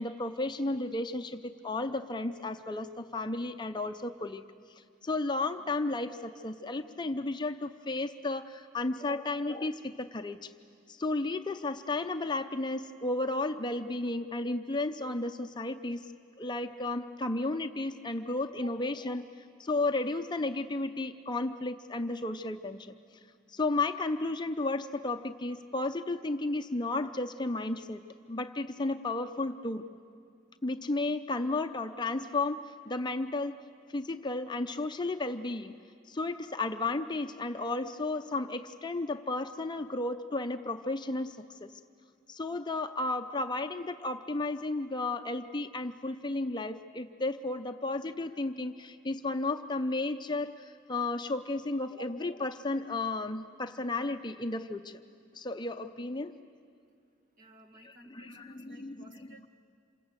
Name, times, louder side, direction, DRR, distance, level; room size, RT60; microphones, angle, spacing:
voice 1, 0.0-4.4 5.0-10.5 10.9-16.1 16.4-22.9 23.5-28.0 28.3-29.8 30.6-33.6 33.9-35.7 36.1-41.7 42.3-55.0 55.3-56.3 58.1-59.0, left 2 dB, 25° left, 7 dB, 0.6 m, -33 dB
voice 2, 57.4-59.5, right 3 dB, 45° right, 3 dB, 2.2 m, -51 dB
27.5 x 26.0 x 8.2 m, 2.3 s
head